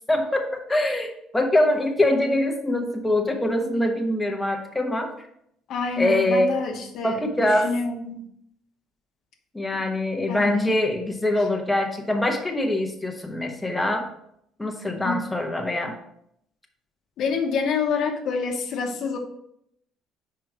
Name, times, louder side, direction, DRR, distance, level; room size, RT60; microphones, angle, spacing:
voice 1, 0.1-5.1 6.0-6.6 7.0-7.7 9.5-14.1 14.6-16.0, left 1 dB, 10° left, 2 dB, 1.0 m, -23 dB
voice 2, 5.7-8.3 9.7-9.8 10.3-10.7 15.0-15.2 17.2-19.2, left 5 dB, 65° left, 3 dB, 1.0 m, -27 dB
5.0 x 4.7 x 4.9 m, 0.73 s
cardioid pair, 95°, 0 cm